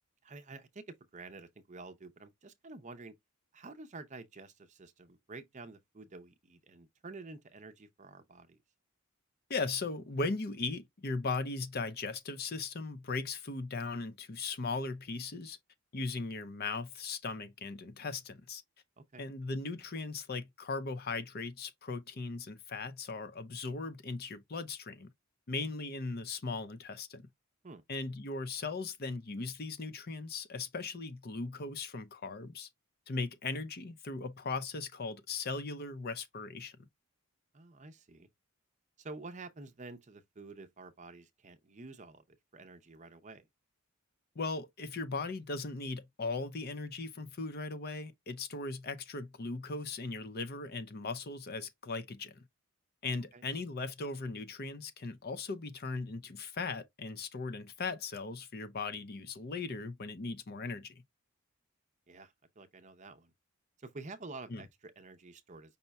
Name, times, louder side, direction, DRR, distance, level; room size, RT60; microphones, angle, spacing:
voice 1, 0.2-3.1 3.5-8.6 19.0-19.3 27.6-27.8 37.5-38.3 39.0-43.5 53.3-53.4 62.1-63.3 63.8-65.8, right 3 dB, 35° right, 0.6 m, -49 dB
voice 2, 9.5-15.6 15.9-18.6 19.2-25.1 25.5-27.2 27.9-32.7 33.1-36.8 44.4-52.4 53.0-61.0 64.5-64.6, left 3 dB, 45° left, 0.6 m, -38 dB
5.5 x 2.2 x 4.0 m
head